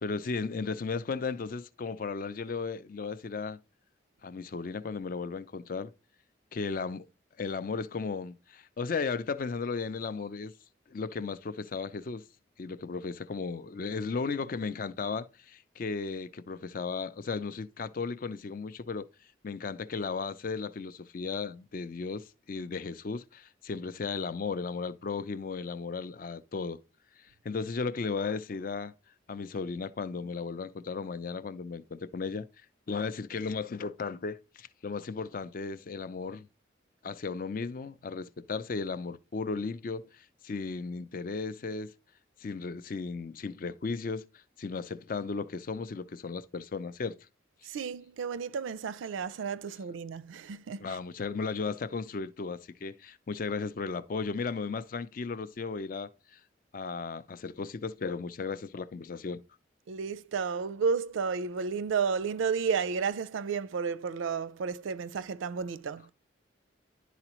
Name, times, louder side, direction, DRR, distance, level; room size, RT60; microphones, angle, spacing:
voice 1, 0.0-3.6 4.2-5.9 6.5-7.1 7.4-10.5 10.9-12.3 12.6-19.1 19.4-26.8 27.2-28.9 29.3-32.5 32.9-36.5 37.0-41.9 42.4-47.2 50.8-56.4 56.7-59.4, left 4 dB, 45° left, 0.4 m, -35 dB
voice 2, 47.6-51.0 59.9-66.1, right 6 dB, 90° right, 0.4 m, -32 dB
11.0 x 4.1 x 3.0 m
head